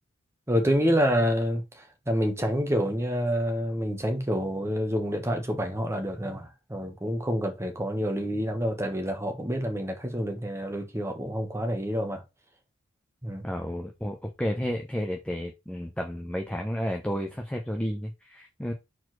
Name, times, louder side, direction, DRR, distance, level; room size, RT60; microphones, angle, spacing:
voice 1, 0.5-12.2 13.2-13.4, equal, 15° right, 1.5 m, -28 dB
voice 2, 13.4-18.7, equal, 5° left, 0.9 m, -32 dB
4.8 x 4.3 x 5.9 m
head